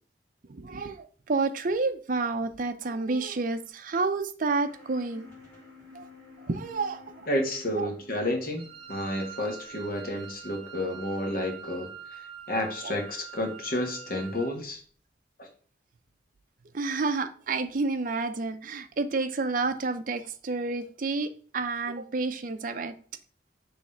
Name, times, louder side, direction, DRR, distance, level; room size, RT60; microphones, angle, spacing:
voice 1, 0.5-5.3 5.9-6.1 6.4-7.3 7.8-7.9 12.8-12.9 16.7-22.9, right 3 dB, 50° right, 0.5 m, -30 dB
sound 1, 4.4-10.3, left 4 dB, 5° left, 2.7 m, -53 dB
voice 2, 7.3-12.2 12.5-14.8 15.4-15.5, left 1 dB, 55° left, 1.4 m, -31 dB
Wind instrument woodwind instrument, 8.6-14.6, right 8 dB, 30° right, 1.3 m, -45 dB
5.3 x 3.3 x 5.5 m
head